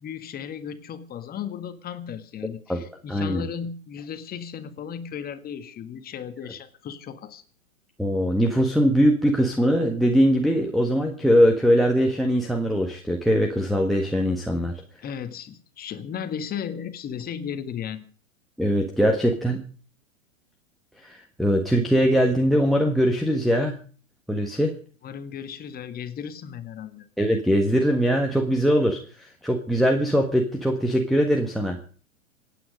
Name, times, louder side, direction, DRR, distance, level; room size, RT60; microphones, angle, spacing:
voice 1, 0.0-7.4 15.0-18.0 25.0-27.1, left 8 dB, 20° left, 10 dB, 1.7 m, -35 dB
voice 2, 3.1-3.4 8.0-14.8 18.6-19.6 21.0-23.8 24.3-24.7 27.2-31.8, equal, ahead, 4 dB, 1.5 m, -21 dB
25.5 x 9.3 x 5.2 m, 0.41 s
hypercardioid pair, 120°, 41 cm